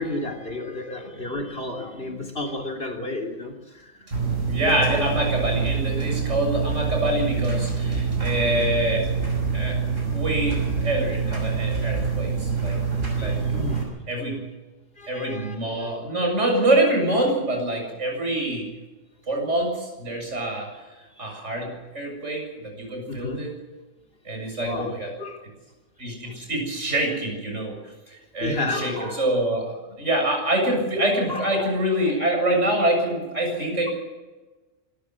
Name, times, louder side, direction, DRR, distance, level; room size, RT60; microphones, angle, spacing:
voice 1, 0.0-4.1 12.9-13.9 15.0-15.9 20.4-20.8 21.2-21.4 23.1-23.4 24.6-25.5 26.2-26.4 28.1-29.3 31.3-31.7, left 2 dB, 50° left, 2 dB, 3.4 m, -33 dB
voice 2, 0.9-1.3 2.0-2.2 4.5-9.1 9.5-12.8 13.1-13.4 14.1-14.4 15.1-18.7 19.3-20.7 21.2-23.5 24.2-25.1 26.0-27.8 28.1-33.9, right 1 dB, 70° right, 2 dB, 7.7 m, -25 dB
Dryer loop (slightly clicky), 4.1-13.8, right 5 dB, 85° right, 6.1 m, -26 dB
25.0 x 14.0 x 7.6 m, 1.2 s
omnidirectional pair, 1.3 m